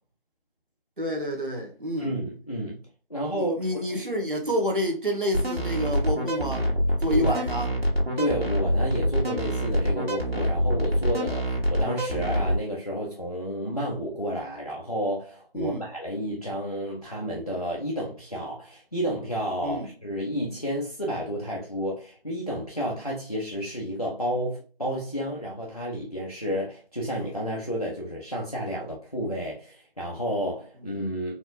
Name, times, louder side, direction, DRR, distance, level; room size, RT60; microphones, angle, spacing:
voice 1, 1.0-2.1 3.3-6.7 7.0-7.7 15.5-15.9 19.6-19.9, equal, 60° right, 1.2 m, -28 dB
voice 2, 2.0-2.8 3.1-4.0 7.1-7.4 8.2-31.4, equal, 40° left, 0.8 m, -31 dB
sound 1, 5.3-12.6, equal, 85° right, 1.7 m, -25 dB
4.2 x 2.9 x 2.5 m
figure-of-eight pair, 180°, 30 cm